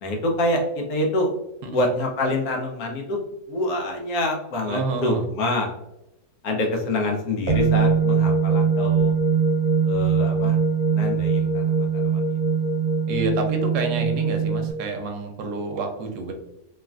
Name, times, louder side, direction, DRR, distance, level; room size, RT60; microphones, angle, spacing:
voice 1, 0.0-1.3 1.7-3.2 3.5-5.7 6.4-9.1 9.8-10.6 10.9-12.4, left 1 dB, 70° left, 1 dB, 1.0 m, -26 dB
voice 2, 4.7-5.2 13.1-16.3, right 3 dB, 80° right, 3 dB, 1.2 m, -28 dB
sound 1, 7.5-14.7, right 5 dB, 60° right, 1.0 m, -21 dB
3.2 x 2.4 x 2.3 m, 0.89 s
omnidirectional pair, 1.7 m